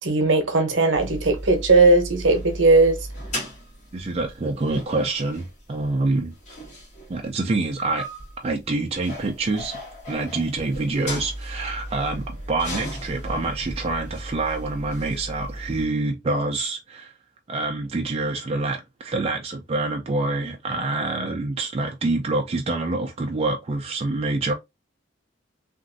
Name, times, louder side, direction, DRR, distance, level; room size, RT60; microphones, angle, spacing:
voice 1, 0.0-3.0, right 3 dB, 65° right, 0.8 m, -18 dB
sound 1, 0.9-15.9, equal, 40° left, 1.5 m, -36 dB
voice 2, 3.9-6.3 7.1-8.1 8.4-9.8 10.1-17.1 17.5-24.5, right 2 dB, 30° right, 0.4 m, -26 dB
2.9 x 2.5 x 2.5 m
head